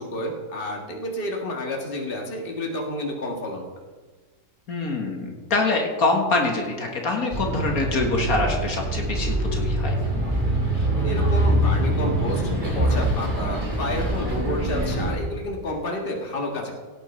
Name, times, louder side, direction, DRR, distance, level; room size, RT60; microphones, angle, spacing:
voice 1, 0.0-3.7 10.9-12.5 12.7-16.8, left 1 dB, 35° left, 0 dB, 1.8 m, -30 dB
voice 2, 4.7-9.9, left 3 dB, 65° left, 1 dB, 2.1 m, -25 dB
Bus, 7.3-15.1, right 1 dB, 30° right, 2.7 m, -24 dB
17.5 x 8.2 x 4.4 m, 1.4 s
omnidirectional pair, 1.6 m